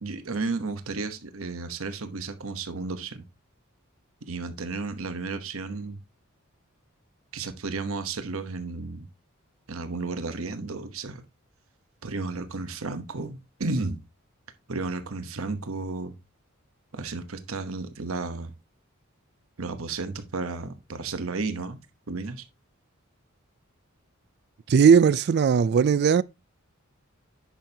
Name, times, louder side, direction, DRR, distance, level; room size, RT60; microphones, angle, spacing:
voice 1, 0.0-3.2 4.3-6.0 7.3-9.1 9.7-11.2 12.0-14.0 14.7-16.1 16.9-18.5 19.6-21.8 22.1-22.4, right 3 dB, 70° right, 1.0 m, -33 dB
voice 2, 24.7-26.2, right 6 dB, 50° right, 0.3 m, -18 dB
10.5 x 6.1 x 2.8 m
head